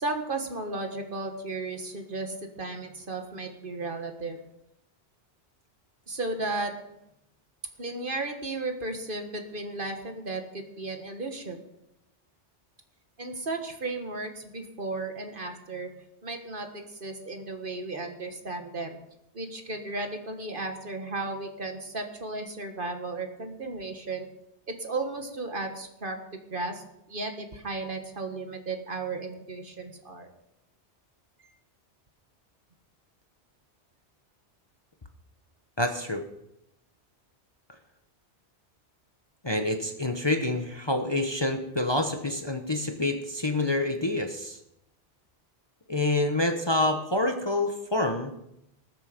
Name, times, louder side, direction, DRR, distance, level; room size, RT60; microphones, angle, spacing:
voice 1, 0.0-4.4 6.1-6.7 7.8-11.6 13.2-15.9 16.2-19.0 19.3-24.3 24.7-30.3, right 3 dB, 50° right, 5 dB, 1.7 m, -34 dB
voice 2, 35.8-36.2 39.4-44.6 45.9-48.3, left 2 dB, 25° left, 5 dB, 1.0 m, -27 dB
20.0 x 7.7 x 5.2 m, 0.83 s
omnidirectional pair, 1.2 m